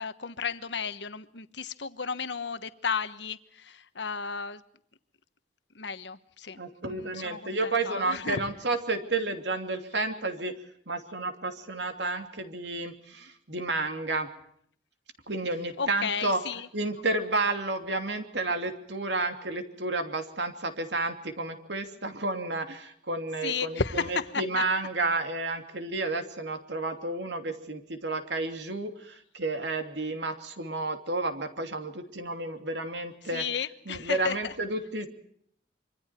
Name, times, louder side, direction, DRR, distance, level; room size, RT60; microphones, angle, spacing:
voice 1, 0.0-4.6 5.7-6.6 6.9-8.4 15.8-16.7 23.4-24.6 33.3-34.5, left 5 dB, 75° left, 12 dB, 1.2 m, -33 dB
voice 2, 6.6-10.6 10.9-14.3 15.3-16.4 16.7-33.4 33.9-35.1, right 2 dB, 75° right, 6 dB, 2.9 m, -31 dB
26.0 x 25.0 x 4.5 m, 0.65 s
head